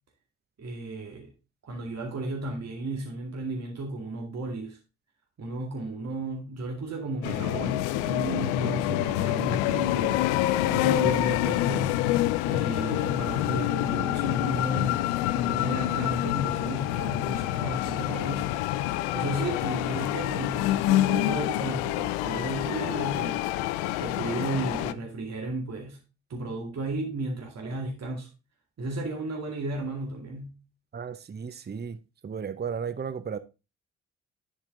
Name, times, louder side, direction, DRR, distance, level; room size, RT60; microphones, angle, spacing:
voice 1, 0.6-1.3 1.6-4.8 5.4-10.2 10.7-12.1 12.5-18.6 19.1-23.4 24.0-26.0 26.3-28.3 28.8-30.6, right 2 dB, 50° right, 2.2 m, -34 dB
sound 1, 7.2-24.9, left 15 dB, 80° left, 0.5 m, -27 dB
voice 2, 30.9-33.4, right 6 dB, 30° right, 0.8 m, -35 dB
10.0 x 5.2 x 3.8 m
hypercardioid pair, 40°, 34 cm